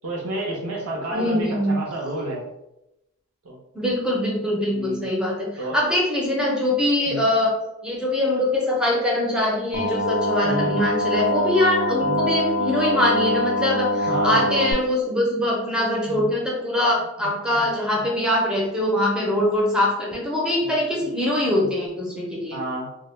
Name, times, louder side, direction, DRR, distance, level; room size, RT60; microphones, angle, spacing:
voice 1, 0.0-2.4 3.4-3.6 4.7-5.0 5.6-5.8 7.1-7.2 10.4-10.8 12.0-12.2 14.1-14.4 16.1-16.3 17.2-17.7 18.0-18.1 20.6-20.7 21.6-21.7 22.5-22.9, right 1 dB, 80° right, -3 dB, 0.6 m, -30 dB
voice 2, 1.1-1.8 3.7-5.5 5.7-7.6 7.8-22.6, left 1 dB, 5° right, -3 dB, 0.5 m, -23 dB
sound 1, 9.7-14.7, left 1 dB, 75° left, 0.5 m, -24 dB
2.1 x 2.1 x 3.1 m, 0.91 s
head